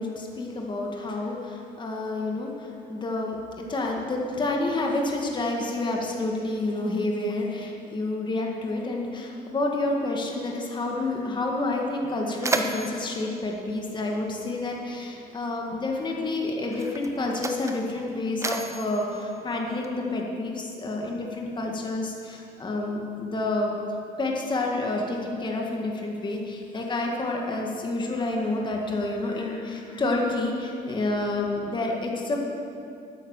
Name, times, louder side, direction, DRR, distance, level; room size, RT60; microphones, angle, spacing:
voice 1, 0.0-23.8 24.2-32.4, left 2 dB, 25° left, 0 dB, 1.8 m, -29 dB
Mechanisms, 11.9-14.6 15.6-15.8 16.6-20.2, right 2 dB, 15° right, 1.0 m, -33 dB
12.0 x 10.0 x 6.5 m, 2.5 s
cardioid pair, 110°, 17 cm